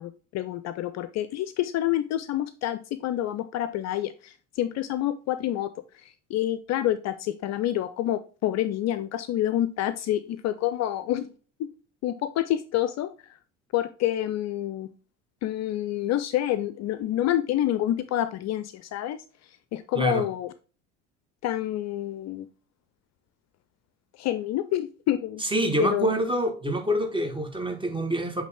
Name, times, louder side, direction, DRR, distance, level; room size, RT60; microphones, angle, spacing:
voice 1, 0.0-11.3 11.6-11.7 12.0-13.1 13.7-14.9 15.4-19.2 19.7-20.5 21.4-22.5 24.2-25.4 25.8-26.1, left 12 dB, 45° left, 0.5 m, -28 dB
voice 2, 25.4-28.4, right 1 dB, 15° right, 1.5 m, -26 dB
8.2 x 3.3 x 3.5 m
hypercardioid pair, 60°, 37 cm